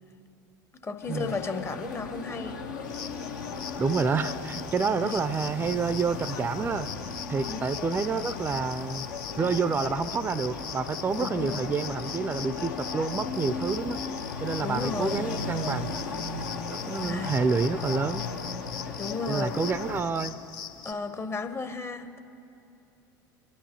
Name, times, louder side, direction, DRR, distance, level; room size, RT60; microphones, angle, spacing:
voice 1, 0.7-2.6 5.0-5.2 7.5-7.6 11.2-11.7 14.6-15.2 17.1-17.4 18.9-19.6 20.8-22.2, left 4 dB, 25° left, 9 dB, 0.8 m, -34 dB
sound 1, 1.0-20.0, left 4 dB, 80° left, 1.0 m, -36 dB
sound 2, 2.8-20.9, left 8 dB, 55° left, 0.9 m, -41 dB
voice 2, 3.8-6.9 7.3-9.1 9.4-14.0 14.4-15.9 16.7-18.2 19.3-20.4, right 4 dB, 20° right, 13 dB, 0.4 m, -28 dB
23.0 x 11.0 x 2.9 m, 2.7 s
hypercardioid pair, 75°, 10 cm